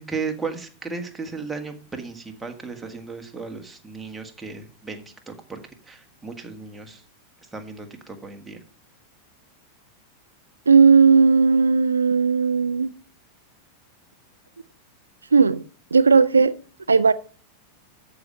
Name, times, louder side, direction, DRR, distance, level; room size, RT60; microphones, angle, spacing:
voice 1, 0.0-5.6 5.9-7.0 7.5-8.6, right 4 dB, 10° right, 1.7 m, -35 dB
voice 2, 10.7-12.9 15.3-15.6 15.9-16.5 16.9-17.1, right 5 dB, 75° right, 0.5 m, -16 dB
13.5 x 5.1 x 5.6 m
figure-of-eight pair, 90°, 0 cm